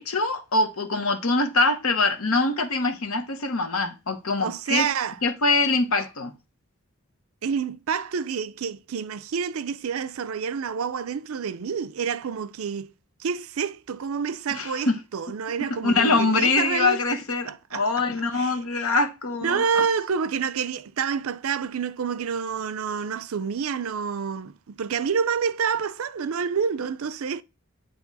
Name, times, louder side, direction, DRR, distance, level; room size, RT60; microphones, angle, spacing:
voice 1, 0.0-4.9 5.2-6.3 14.5-15.0 15.8-19.9, left 3 dB, 75° left, 1.1 m, -24 dB
voice 2, 4.4-5.2 7.4-12.9 13.2-17.0 17.4-18.1 18.3-18.6 19.4-27.4, right 6 dB, 75° right, 0.5 m, -28 dB
8.4 x 3.2 x 4.0 m
head